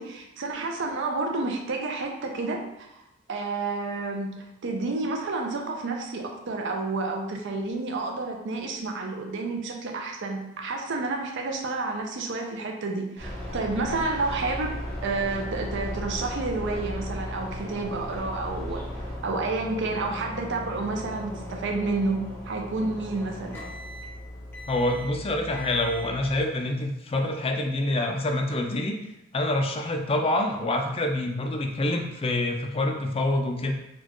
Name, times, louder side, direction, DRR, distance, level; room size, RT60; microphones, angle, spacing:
voice 1, 0.0-3.0 3.3-14.7 15.0-18.8 19.2-23.6, right 3 dB, 60° right, 2 dB, 0.5 m, -30 dB
sound 1, 13.2-26.4, left 1 dB, 10° left, 0.8 m, -39 dB
sound 2, 13.2-19.2, equal, 30° right, 0.9 m, -38 dB
voice 2, 24.7-29.0 29.3-33.7, left 1 dB, 30° left, 3 dB, 0.4 m, -26 dB
4.1 x 2.3 x 3.0 m, 0.87 s
head